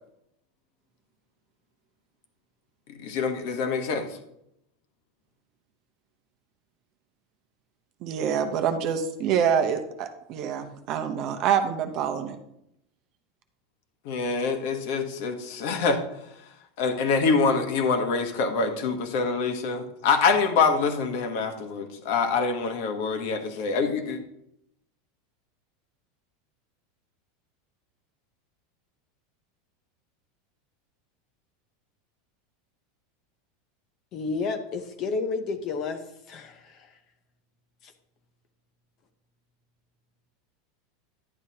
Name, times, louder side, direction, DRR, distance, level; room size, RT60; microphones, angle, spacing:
voice 1, 3.0-4.2 14.0-16.0 16.8-24.2, left 4 dB, 50° left, 6 dB, 1.1 m, -25 dB
voice 2, 8.0-12.4, right 8 dB, 35° right, 7 dB, 0.8 m, -26 dB
voice 3, 34.1-37.0 37.8-37.9, left 4 dB, 30° left, 7 dB, 0.7 m, -31 dB
11.0 x 9.7 x 2.9 m, 0.78 s
supercardioid pair, 175°, 0 cm